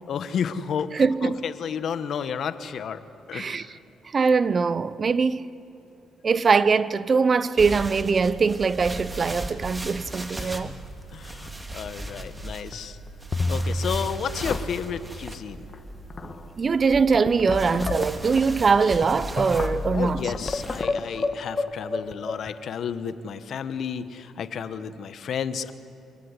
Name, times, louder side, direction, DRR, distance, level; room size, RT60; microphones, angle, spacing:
voice 1, 0.1-0.9 1.2-3.0 3.3-3.8 10.3-10.8 11.1-13.0 13.5-15.7 19.9-25.7, left 7 dB, 65° left, 1.2 m, -32 dB
voice 2, 0.9-1.4 3.3-3.7 4.0-5.5 6.2-10.7 16.6-20.3, right 5 dB, 40° right, 0.7 m, -22 dB
sound 1, 7.6-20.8, right 1 dB, 15° right, 2.0 m, -38 dB
sound 2, 12.0-12.4 12.7-12.8 13.3-14.1 14.4-15.0 15.7-15.8 16.1-16.5 17.0-22.5, left 3 dB, 35° left, 1.3 m, -29 dB
26.0 x 16.5 x 9.7 m
cardioid pair, 90°, 0 cm